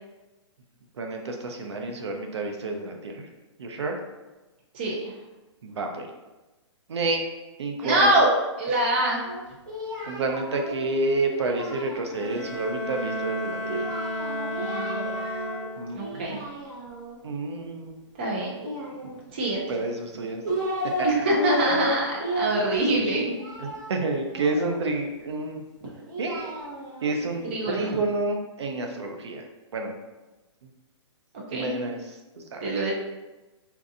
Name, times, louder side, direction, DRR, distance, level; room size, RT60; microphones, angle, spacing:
voice 1, 1.0-3.2 3.6-4.0 5.6-6.1 6.9-7.2 7.6-8.1 10.1-13.9 15.8-16.4 17.2-18.0 19.7-20.4 23.6-25.6 26.2-26.5 27.0-29.4 29.7-29.9 31.5-32.2 32.5-32.6, right 2 dB, 65° right, 3 dB, 0.6 m, -29 dB
voice 2, 4.7-5.1 7.8-8.3 8.6-9.2 14.6-15.1 15.9-16.4 18.2-18.6 19.3-19.6 21.0-23.3 27.4-28.0 31.5-31.7 32.6-32.9, right 1 dB, 20° right, -3 dB, 0.4 m, -24 dB
Singing, 9.2-12.5 13.6-15.7 16.0-17.2 18.6-19.5 20.1-21.1 21.4-25.0 25.8-28.0, equal, 40° right, 0.9 m, -33 dB
Bowed string instrument, 12.0-16.1, left 1 dB, 45° left, 1.1 m, -32 dB
4.4 x 2.7 x 2.5 m, 1.1 s
hypercardioid pair, 170°, 15 cm